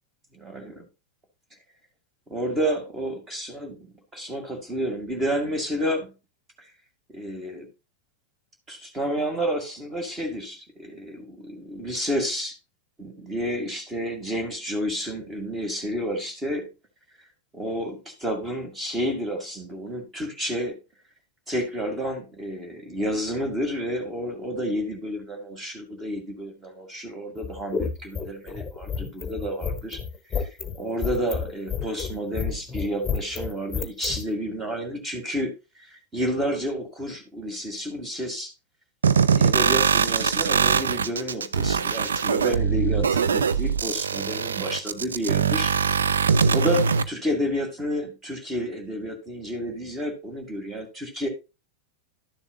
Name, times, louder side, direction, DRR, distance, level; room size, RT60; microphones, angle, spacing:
voice 1, 0.4-0.7 2.3-3.8 4.1-6.1 7.1-7.7 8.7-12.6 13.0-16.7 17.5-20.7 21.5-30.0 30.4-30.5 30.8-35.5 35.8-38.5 39.3-45.7 46.1-51.3, equal, 15° right, 4 dB, 2.2 m, -30 dB
sound 1, 27.4-34.2, left 6 dB, 15° left, 1.2 m, -30 dB
sound 2, 39.0-47.0, right 6 dB, 70° right, 0.5 m, -22 dB
12.0 x 7.0 x 2.4 m, 0.26 s
figure-of-eight pair, 90°, 0 cm